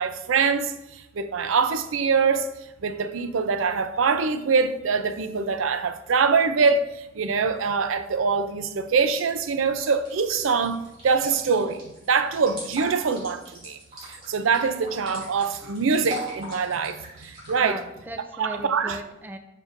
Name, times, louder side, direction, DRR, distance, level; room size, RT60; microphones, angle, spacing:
voice 1, 0.0-2.5 2.8-13.8 14.1-17.8 18.4-19.0, right 5 dB, 90° right, 10 dB, 0.5 m, -24 dB
sound 1, 9.9-17.6, equal, 30° right, 2.5 m, -39 dB
voice 2, 17.6-19.4, right 1 dB, 10° right, 6 dB, 0.4 m, -37 dB
7.2 x 6.5 x 2.6 m, 0.94 s
head